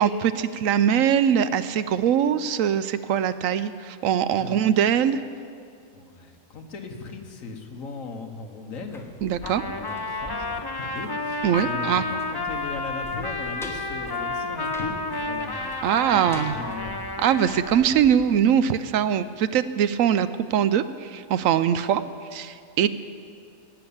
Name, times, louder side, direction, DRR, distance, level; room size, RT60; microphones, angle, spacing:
voice 1, 0.0-5.2 9.2-9.6 11.4-12.0 15.8-16.6 17.2-22.0 22.3-22.9, right 9 dB, 75° right, 13 dB, 0.9 m, -22 dB
voice 2, 5.9-9.1 9.4-17.0, left 3 dB, 70° left, 4 dB, 1.6 m, -38 dB
sound 1, 8.7-19.5 19.8-19.9, left 1 dB, ahead, 1.1 m, -45 dB
Trumpet, 9.4-17.9, left 3 dB, 30° left, 0.5 m, -31 dB
17.0 x 6.9 x 8.6 m, 2.3 s
omnidirectional pair, 1.4 m